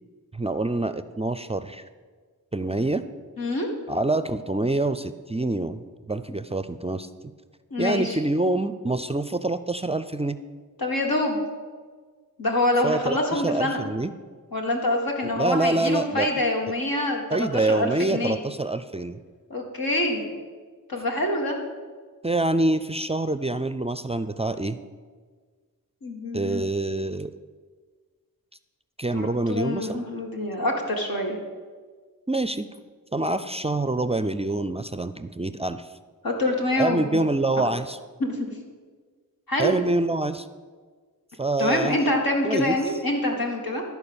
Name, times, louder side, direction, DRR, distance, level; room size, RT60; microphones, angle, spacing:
voice 1, 0.3-1.8 2.5-3.0 3.9-7.1 7.8-10.4 12.8-14.1 15.2-16.3 17.3-19.2 22.2-24.8 26.3-27.3 29.0-30.1 32.3-32.7 33.1-35.9 36.8-38.0 39.6-40.5 41.4-42.1 42.4-42.8, right 2 dB, 20° right, 12 dB, 0.4 m, -26 dB
voice 2, 3.4-3.7 7.7-8.2 10.8-11.4 12.4-13.8 14.5-18.4 19.5-20.3 20.9-21.6 26.0-26.6 29.1-31.4 36.2-37.2 37.6-37.7 38.2-38.5 39.5-39.8 41.6-43.8, left 1 dB, 80° left, 1 dB, 1.8 m, -26 dB
12.5 x 4.6 x 6.9 m, 1.5 s
cardioid pair, 45°, 35 cm